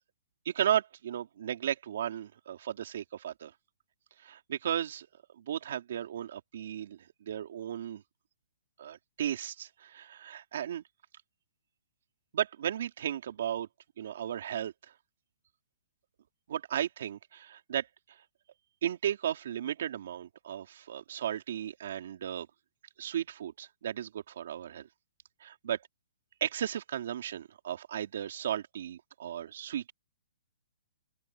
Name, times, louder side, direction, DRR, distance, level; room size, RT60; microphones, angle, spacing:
voice 1, 0.4-3.5 4.2-5.1 5.4-8.0 8.8-10.8 12.3-13.7 14.0-14.7 16.5-17.9 18.8-22.5 23.0-24.9 25.4-25.8 26.4-29.9, right 10 dB, 55° right, 3.2 m, -35 dB
open air
hypercardioid pair, 165°, 0 cm